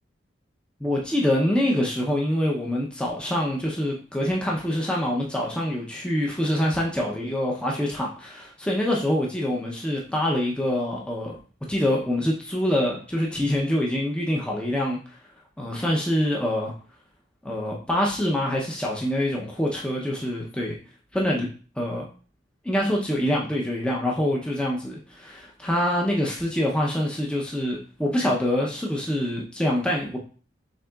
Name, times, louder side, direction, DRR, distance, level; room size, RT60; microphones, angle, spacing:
voice 1, 0.8-11.3 11.7-15.0 15.6-16.7 17.4-20.8 21.1-21.5 21.8-22.0 22.6-30.2, left 1 dB, 5° left, -3 dB, 0.6 m, -25 dB
6.5 x 3.5 x 2.3 m, 0.41 s
head